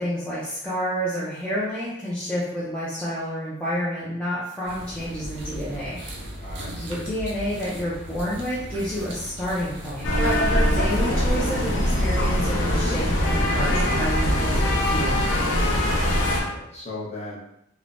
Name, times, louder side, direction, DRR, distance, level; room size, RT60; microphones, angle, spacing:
voice 1, 0.0-6.0 6.5-15.2, equal, 5° left, -10 dB, 0.4 m, -29 dB
sound 1, 4.6-10.6, right 1 dB, 60° right, 0.4 m, -37 dB
voice 2, 6.3-7.2 15.8-17.4, left 2 dB, 35° left, -6 dB, 0.8 m, -37 dB
sound 2, 10.0-16.4, left 1 dB, 75° left, 0.6 m, -22 dB
3.1 x 2.1 x 2.5 m, 0.79 s
head